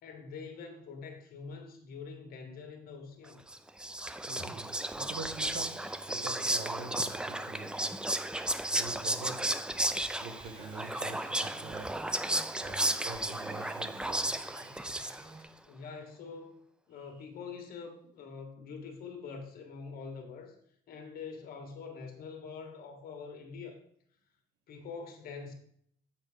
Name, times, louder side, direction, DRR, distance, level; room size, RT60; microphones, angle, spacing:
voice 1, 0.0-3.4 15.4-16.6 16.9-20.5 20.9-23.8 24.7-25.5, left 5 dB, 60° left, 4 dB, 1.6 m, -45 dB
Whispering, 3.5-15.5, right 1 dB, 5° right, 0.3 m, -34 dB
voice 2, 4.3-8.1 8.7-9.7 10.2-12.2 12.6-14.9, right 4 dB, 70° right, 6 dB, 1.3 m, -45 dB
sound 1, 9.9-15.4, right 2 dB, 30° right, 2.0 m, -54 dB
8.2 x 4.3 x 5.0 m, 0.66 s
cardioid pair, 110°, 17 cm